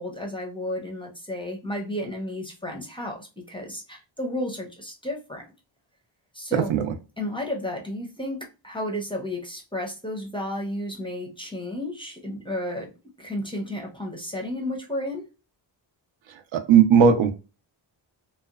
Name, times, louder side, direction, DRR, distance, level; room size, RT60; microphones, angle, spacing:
voice 1, 0.0-5.5 6.3-6.8 7.2-12.9 13.2-15.3, left 1 dB, 10° left, 1 dB, 0.4 m, -32 dB
voice 2, 6.5-6.9 16.3-17.3, right 7 dB, 80° right, 8 dB, 0.6 m, -18 dB
2.7 x 2.1 x 2.4 m, 0.30 s
wide cardioid pair, 165°, 46 cm